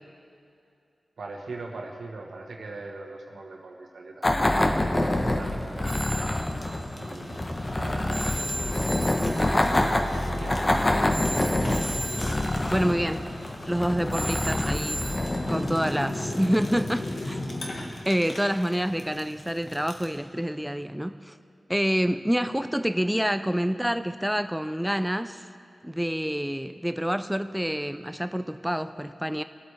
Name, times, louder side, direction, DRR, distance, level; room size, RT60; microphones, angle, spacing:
voice 1, 1.2-6.4 6.9-10.8 11.2-11.9 15.5-15.8, right 3 dB, 75° right, 0 dB, 1.3 m, -42 dB
sound 1, 4.2-16.4, left 1 dB, 30° left, 0.9 m, -27 dB
Fire, 5.0-20.2, left 2 dB, 60° left, 1.5 m, -37 dB
Telephone, 5.8-15.6, right 1 dB, 20° right, 2.2 m, -38 dB
voice 2, 12.7-13.3 13.7-15.0 15.5-17.4 18.1-21.4 21.7-25.4 25.8-29.4, equal, 5° right, 10 dB, 0.4 m, -27 dB
23.0 x 8.0 x 3.4 m, 2.5 s
cardioid pair, 55°, 0 cm